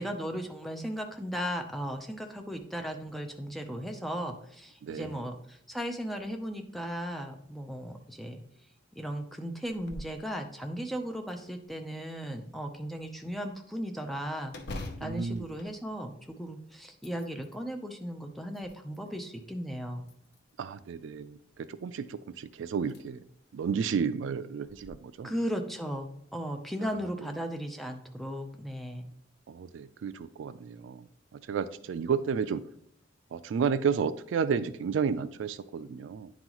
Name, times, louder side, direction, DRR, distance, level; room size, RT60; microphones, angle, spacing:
voice 1, 0.0-8.4 9.0-14.6 15.0-20.1 25.2-29.1, equal, ahead, 4 dB, 0.5 m, -36 dB
voice 2, 4.8-5.2 15.0-15.4 20.6-21.4 21.8-23.2 23.5-25.3 29.5-31.0 31.5-32.6 33.3-36.3, right 6 dB, 75° right, 13 dB, 0.3 m, -31 dB
sound 1, 9.7-10.2 10.6-10.7 11.3-12.1 14.5-16.5 16.9-17.6 18.3-19.1 20.0-20.7 22.2-22.3 22.8-23.0 23.5-23.6 24.6-24.9, left 1 dB, 55° left, 0.6 m, -44 dB
9.6 x 3.9 x 3.0 m, 0.69 s
head